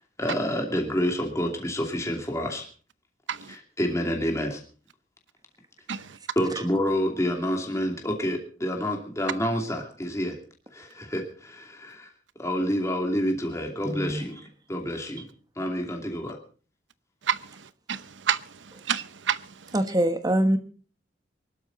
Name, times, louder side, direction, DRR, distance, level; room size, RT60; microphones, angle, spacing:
voice 1, 0.2-2.7 3.5-4.6 6.4-10.4 10.7-12.1 12.4-14.4 14.7-15.2 15.6-16.4, equal, 15° left, 2.6 m, -28 dB
voice 2, 13.8-14.2 19.7-20.6, right 1 dB, 20° right, 1.2 m, -23 dB
voice 3, 17.2-19.7, right 8 dB, 85° right, 0.8 m, -30 dB
23.5 x 12.5 x 4.0 m
head